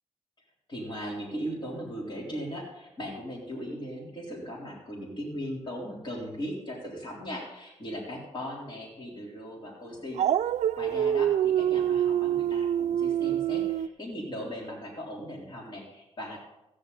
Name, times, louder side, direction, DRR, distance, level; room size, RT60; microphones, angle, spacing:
voice 1, 0.7-10.2 10.8-16.4, equal, 40° left, -3 dB, 3.7 m, -38 dB
Dog, 10.2-13.9, right 10 dB, 75° right, 0.4 m, -26 dB
14.5 x 10.0 x 4.1 m, 0.93 s
cardioid pair, 85°, 12 cm